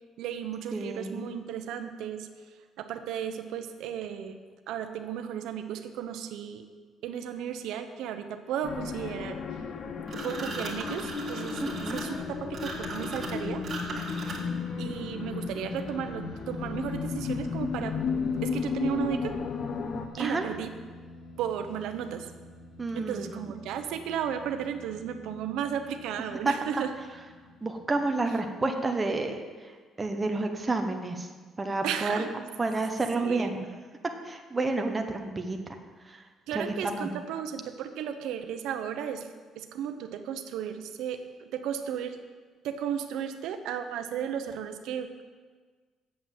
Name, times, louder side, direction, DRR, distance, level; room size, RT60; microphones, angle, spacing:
voice 1, 0.2-4.4 4.7-6.6 7.0-9.6 10.1-13.7 14.8-19.4 20.2-20.7 21.4-22.3 23.0-26.9 28.3-28.4 31.8-32.5 33.2-33.6 36.5-39.3 39.6-42.2 42.6-45.2, right 8 dB, 80° right, 7 dB, 0.8 m, -34 dB
voice 2, 0.7-1.2 11.6-12.0 20.2-20.5 22.8-23.4 27.6-29.7 30.0-31.3 31.6-32.3 32.6-33.7 34.2-35.6 36.1-36.2 36.5-37.1, right 3 dB, 15° right, 4 dB, 0.8 m, -30 dB
sound 1, 8.6-20.1, left 5 dB, 40° left, 0.6 m, -34 dB
sound 2, 10.1-14.7, right 3 dB, 35° right, 1.9 m, -38 dB
sound 3, 14.2-28.6, left 1 dB, 55° left, 1.7 m, -46 dB
8.5 x 7.5 x 7.3 m, 1.5 s
cardioid pair, 165°, 0 cm